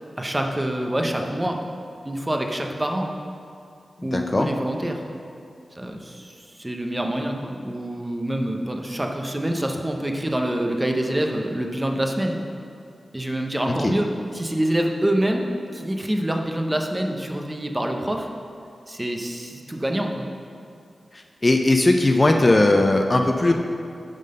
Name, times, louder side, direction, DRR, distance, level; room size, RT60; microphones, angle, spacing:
voice 1, 0.2-1.6 2.0-3.1 4.0-5.0 5.8-12.4 13.1-14.1 14.3-15.5 15.7-18.3 18.9-20.3, right 1 dB, 15° right, 2 dB, 0.6 m, -26 dB
voice 2, 4.1-4.5 13.7-13.9 21.1-23.5, left 2 dB, 25° left, 4 dB, 0.4 m, -19 dB
9.0 x 3.9 x 6.4 m, 2.5 s
wide cardioid pair, 110°, 0 cm